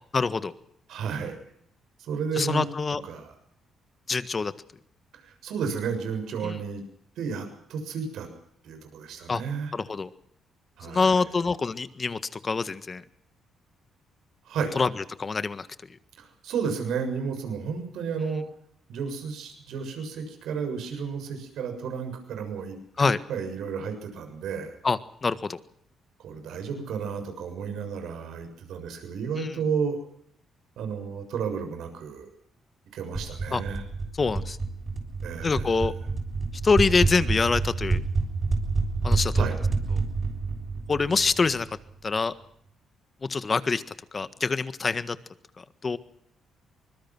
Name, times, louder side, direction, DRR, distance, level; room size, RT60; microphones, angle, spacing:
voice 1, 0.1-0.5 2.3-3.0 4.1-4.5 6.4-6.6 9.3-9.4 9.7-10.1 10.8-13.0 14.7-15.7 23.0-23.2 24.8-25.6 29.4-29.5 33.5-33.6 34.2-34.6 35.4-35.9 36.6-38.0 39.0-39.4 40.9-41.7 42.0-42.3 43.2-43.8 44.1-45.2 45.8-46.0, left 4 dB, 35° left, 13 dB, 1.6 m, -25 dB
voice 2, 0.9-1.4 2.0-2.7 3.0-3.3 5.1-6.8 7.2-8.3 8.6-9.7 10.8-11.3 14.5-14.7 16.2-18.4 18.9-24.8 26.2-30.0 30.8-32.3 32.9-33.8 35.2-35.7 39.4-39.6, right 6 dB, 80° right, 7 dB, 7.0 m, -32 dB
sound 1, 33.1-41.8, right 3 dB, 25° right, 6.8 m, -28 dB
25.0 x 21.5 x 6.1 m, 0.69 s
cardioid pair, 90°, 0 cm